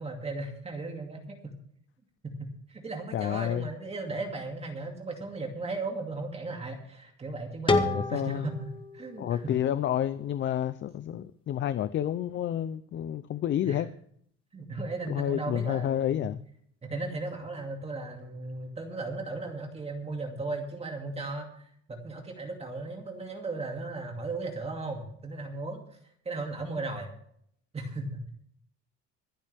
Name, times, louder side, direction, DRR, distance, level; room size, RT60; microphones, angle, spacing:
voice 1, 0.0-1.5 2.2-9.5 13.6-13.8 14.5-16.3 16.8-25.8 26.2-27.1 27.7-28.3, right 3 dB, 20° right, 2 dB, 2.4 m, -36 dB
voice 2, 3.1-3.7 7.9-8.5 9.2-13.9 15.1-16.4, left 10 dB, 40° left, 13 dB, 0.6 m, -29 dB
sound 1, 7.7-10.5, left 3 dB, 15° left, 1.5 m, -31 dB
26.0 x 8.6 x 3.5 m, 0.65 s
cardioid pair, 160°, 31 cm